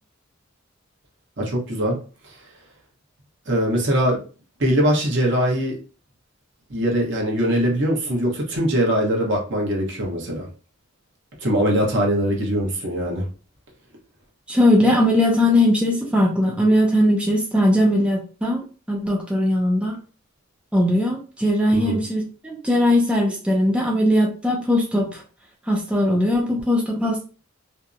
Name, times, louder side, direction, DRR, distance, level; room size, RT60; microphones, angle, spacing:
voice 1, 1.4-2.0 2.2-2.4 3.5-4.2 4.6-5.8 6.7-10.5 11.4-13.2 21.7-22.0, equal, 60° right, -1 dB, 0.9 m, -22 dB
voice 2, 14.5-18.6 18.9-20.0 20.7-25.2 25.7-27.2, left 1 dB, 5° right, -1 dB, 0.4 m, -19 dB
2.7 x 2.1 x 2.4 m, 0.36 s
head